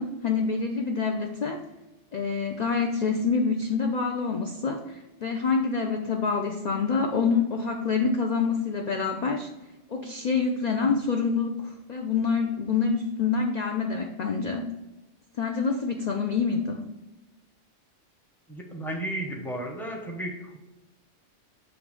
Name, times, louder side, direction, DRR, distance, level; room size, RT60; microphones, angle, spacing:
voice 1, 0.0-1.6 2.1-9.5 9.9-11.6 11.9-14.7 15.4-16.8, left 5 dB, 50° left, 3 dB, 0.5 m, -26 dB
voice 2, 18.5-20.6, right 1 dB, ahead, 0 dB, 0.8 m, -34 dB
7.2 x 3.2 x 4.9 m, 1.0 s
omnidirectional pair, 1.3 m